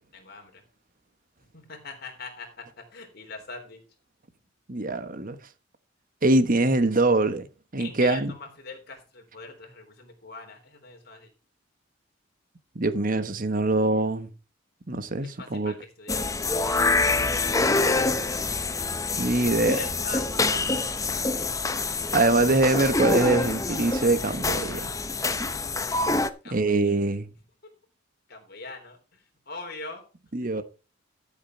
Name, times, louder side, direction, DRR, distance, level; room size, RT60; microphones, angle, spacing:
voice 1, 0.1-0.6 1.5-3.8 7.8-11.3 15.2-16.3 19.7-20.6 26.4-26.7 28.3-29.0 29.5-30.0, left 3 dB, 55° left, 3.6 m, -42 dB
voice 2, 4.7-5.4 6.2-7.5 7.7-8.3 12.7-14.3 14.9-15.7 19.2-19.8 22.1-24.9 26.5-27.3 30.3-30.6, right 2 dB, 45° right, 1.2 m, -23 dB
sound 1, 16.1-26.3, left 3 dB, 15° left, 0.7 m, -26 dB
12.5 x 7.3 x 4.5 m
head